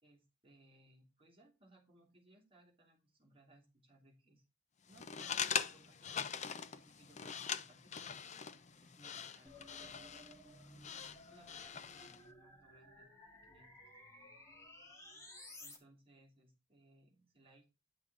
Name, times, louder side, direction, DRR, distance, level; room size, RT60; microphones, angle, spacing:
voice 1, 0.0-4.5 4.9-10.2 11.2-13.8 15.6-17.7, right 1 dB, 30° right, -1 dB, 2.6 m, -66 dB
sound 1, 4.9-12.2, left 7 dB, 40° left, 0.5 m, -43 dB
sound 2, 9.5-15.8, left 1 dB, 15° left, 2.1 m, -57 dB
10.0 x 5.9 x 4.0 m, 0.28 s
head